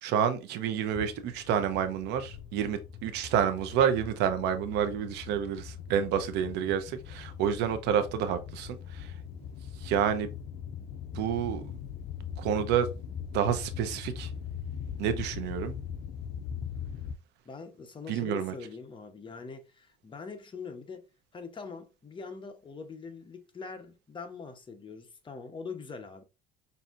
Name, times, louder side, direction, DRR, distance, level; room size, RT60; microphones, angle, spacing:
voice 1, 0.0-9.2 9.8-10.3 11.1-11.8 12.4-12.9 13.3-14.3 15.0-15.7 18.1-18.5, right 8 dB, 90° right, 0.7 m, -29 dB
sound 1, 1.0-17.2, left 8 dB, 60° left, 0.5 m, -41 dB
voice 2, 17.4-21.1 21.3-26.2, left 5 dB, 30° left, 0.9 m, -43 dB
5.5 x 2.7 x 2.5 m
cardioid pair, 110°, 17 cm